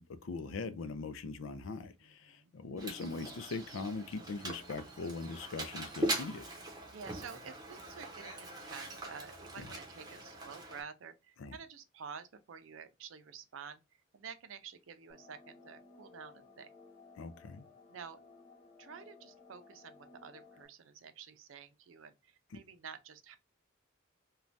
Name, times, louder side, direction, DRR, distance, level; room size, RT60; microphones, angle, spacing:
voice 1, 0.0-6.5 9.6-9.7 11.4-11.6 17.2-17.6, left 4 dB, 85° left, 0.4 m, -41 dB
voice 2, 2.0-2.5 6.9-16.7 17.9-18.2 18.8-23.4, right 6 dB, 85° right, 0.5 m, -50 dB
Mechanisms, 2.8-10.8, right 1 dB, 20° right, 0.7 m, -41 dB
sound 1, 15.1-20.7, left 4 dB, 35° left, 0.7 m, -58 dB
3.2 x 2.3 x 2.5 m
head